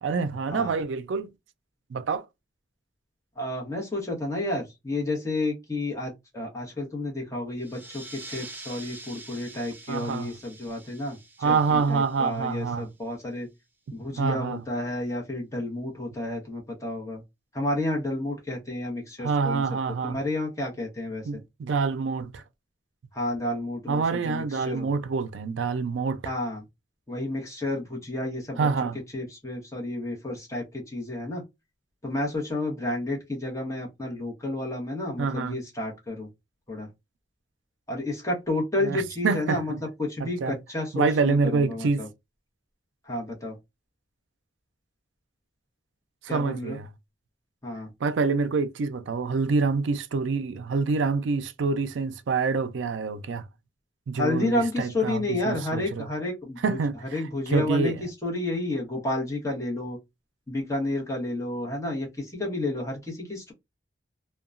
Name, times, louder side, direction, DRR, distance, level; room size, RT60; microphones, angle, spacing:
voice 1, 0.0-1.3 1.9-2.2 9.9-10.4 11.4-12.9 14.2-14.6 19.2-20.2 21.3-22.4 23.9-26.3 28.6-29.0 35.2-35.6 38.8-39.8 40.2-40.6 40.9-42.1 46.2-46.9 48.0-53.5 54.1-56.1 56.6-58.1, right 4 dB, 85° right, 0.4 m, -26 dB
voice 2, 3.4-11.2 11.4-13.5 13.9-17.2 17.5-19.6 20.0-21.3 23.1-24.9 26.2-26.6 27.1-28.6 29.1-31.4 32.0-36.3 36.7-36.9 37.9-42.1 43.0-43.6 46.3-46.8 47.6-47.9 54.1-56.8 57.1-60.0 60.5-63.5, left 2 dB, 15° left, 1.0 m, -31 dB
sound 1, 7.6-12.8, right 2 dB, 10° right, 0.5 m, -45 dB
2.8 x 2.2 x 2.4 m
head